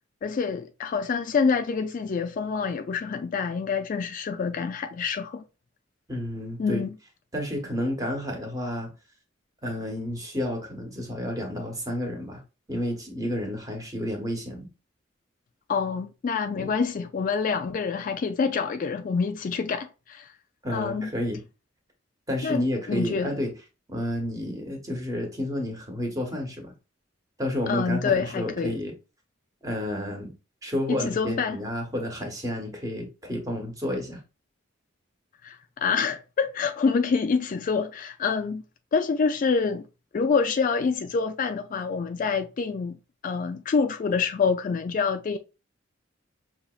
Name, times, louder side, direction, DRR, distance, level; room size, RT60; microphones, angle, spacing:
voice 1, 0.2-5.4 6.6-6.9 15.7-20.3 20.7-21.1 22.4-23.3 27.7-28.8 30.9-31.6 35.4-38.6 38.9-39.8 40.1-45.4, left 5 dB, 45° left, 0.3 m, -26 dB
voice 2, 6.1-6.8 7.3-8.9 9.6-12.4 12.7-14.7 16.5-16.7 20.6-21.4 22.3-23.5 23.9-26.7 27.4-28.9 29.6-30.3 30.6-34.2, left 1 dB, 20° right, 1.1 m, -30 dB
5.5 x 2.9 x 2.3 m
head